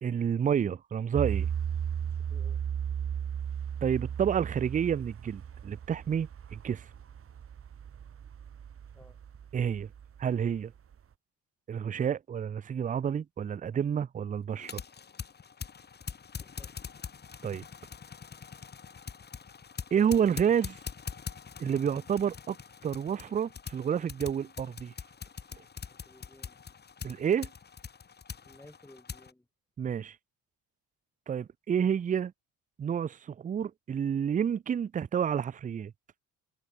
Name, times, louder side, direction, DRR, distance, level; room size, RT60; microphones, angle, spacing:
voice 1, 0.0-1.5 3.8-6.9 9.5-9.9 10.2-10.7 11.7-14.8 17.4-17.6 19.9-20.8 21.6-22.6 22.8-24.9 27.0-27.5 29.8-30.2 31.3-32.3 32.8-35.9, right 8 dB, 25° right, 0.4 m, -29 dB
sound 1, 1.1-10.5 10.9-11.0, right 8 dB, 40° right, 1.8 m, -36 dB
voice 2, 2.0-2.6 8.9-9.2 16.4-16.8 25.7-26.6 28.4-29.5, left 1 dB, 5° left, 4.1 m, -56 dB
sound 2, 14.5-29.3, left 6 dB, 30° left, 1.6 m, -44 dB
cardioid pair, 125°, 35 cm